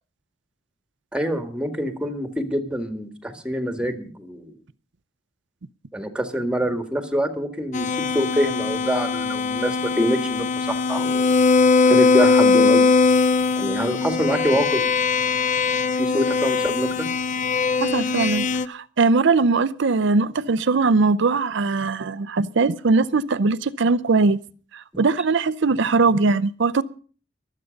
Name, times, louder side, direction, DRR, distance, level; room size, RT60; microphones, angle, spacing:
voice 1, 1.1-4.5 5.9-11.3 11.9-12.9 13.6-14.8 15.9-17.1, equal, 5° right, 1.8 m, -25 dB
sound 1, 7.7-18.7, left 4 dB, 40° left, 0.6 m, -20 dB
voice 2, 17.8-24.4 24.7-26.8, right 4 dB, 65° right, 0.6 m, -20 dB
23.5 x 8.4 x 5.2 m
head